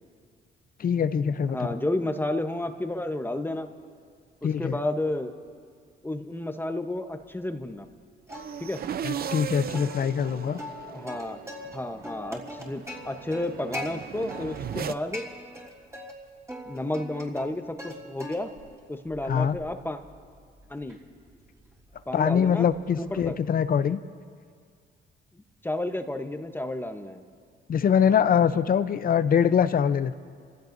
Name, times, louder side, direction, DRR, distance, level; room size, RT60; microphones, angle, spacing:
voice 1, 0.8-1.6 4.4-4.8 9.0-10.6 19.3-19.6 22.1-24.0 27.7-30.1, left 8 dB, 45° left, 13 dB, 0.6 m, -23 dB
voice 2, 1.5-3.7 4.4-5.3 6.0-7.9 8.6-8.8 10.9-11.4 11.7-15.2 16.7-18.5 18.9-20.0 20.7-21.0 22.1-22.7 23.0-23.4 25.6-27.2, left 1 dB, 10° left, 7 dB, 0.9 m, -31 dB
Plucked string instrument, 8.3-8.9 9.2-9.3 9.7-11.8 12.0-13.9 14.3-14.8 15.1-16.1 16.5-17.9 18.2-18.7 19.1-23.3, left 1 dB, 15° right, 3.3 m, -41 dB
sound 1, 8.3-14.9, right 9 dB, 50° right, 0.5 m, -37 dB
29.0 x 15.5 x 2.6 m, 2.1 s
cardioid pair, 90°, 20 cm